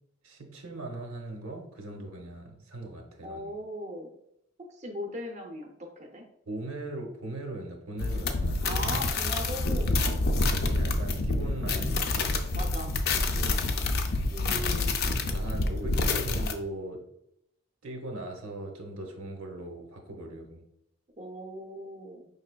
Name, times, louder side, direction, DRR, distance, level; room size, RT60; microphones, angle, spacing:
voice 1, 0.2-3.6 6.5-8.8 10.0-12.3 13.2-13.6 15.2-17.0 17.8-20.6, right 2 dB, 85° right, 2 dB, 0.8 m, -39 dB
voice 2, 3.2-4.1 4.6-6.2 8.6-10.2 12.5-13.0 14.3-15.2 21.2-22.3, equal, 35° right, 1 dB, 0.5 m, -39 dB
sound 1, 8.0-16.5, left 2 dB, 50° left, 0.4 m, -27 dB
5.2 x 3.2 x 2.2 m, 0.77 s
head